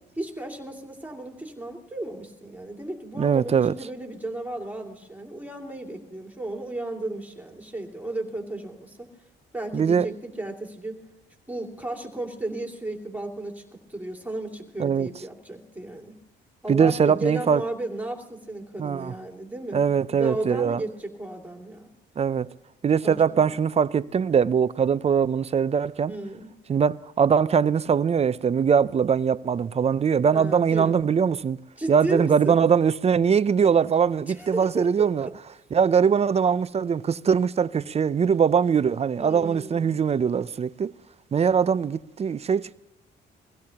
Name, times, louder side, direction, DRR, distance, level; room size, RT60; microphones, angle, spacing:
voice 1, 0.2-9.1 9.5-11.0 11.5-13.6 13.9-16.2 16.6-19.8 20.1-21.9 23.0-23.5 26.1-26.5 30.3-31.0 31.8-32.6 34.3-35.3 39.2-39.9, right 2 dB, 10° right, 2.5 m, -34 dB
voice 2, 3.2-3.7 9.7-10.1 14.8-15.1 16.7-17.6 18.8-19.1 19.7-20.8 22.2-22.5 22.8-26.1 26.7-31.6 31.9-35.3 35.7-40.9 41.3-42.7, right 7 dB, 30° right, 0.4 m, -22 dB
22.5 x 16.5 x 2.9 m
cardioid pair, 90°, 20 cm